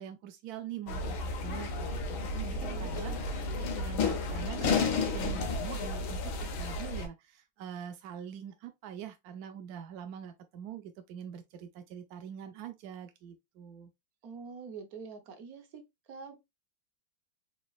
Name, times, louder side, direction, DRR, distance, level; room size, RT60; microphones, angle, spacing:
voice 1, 0.0-13.9, right 9 dB, 75° right, 0.9 m, -44 dB
sound 1, 0.9-7.1, left 3 dB, 85° left, 1.8 m, -32 dB
voice 2, 2.4-3.2 14.2-16.4, right 5 dB, 55° right, 1.2 m, -46 dB
sound 2, 4.6-6.5, right 1 dB, 5° right, 1.7 m, -51 dB
4.4 x 4.1 x 2.3 m
omnidirectional pair, 2.2 m